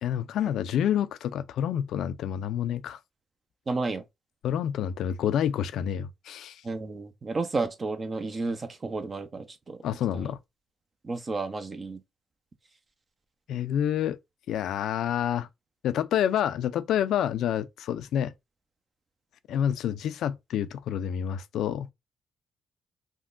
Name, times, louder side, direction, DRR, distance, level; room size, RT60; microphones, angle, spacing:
voice 1, 0.0-3.0 4.4-6.6 9.8-10.4 13.5-14.2 14.5-15.5 15.8-18.3 19.5-21.9, left 10 dB, 75° left, 0.3 m, -28 dB
voice 2, 3.7-4.0 6.6-9.8 10.1-10.3 11.0-12.0, right 3 dB, 35° right, 0.6 m, -32 dB
3.5 x 2.2 x 2.4 m
cardioid pair, 90°, 0 cm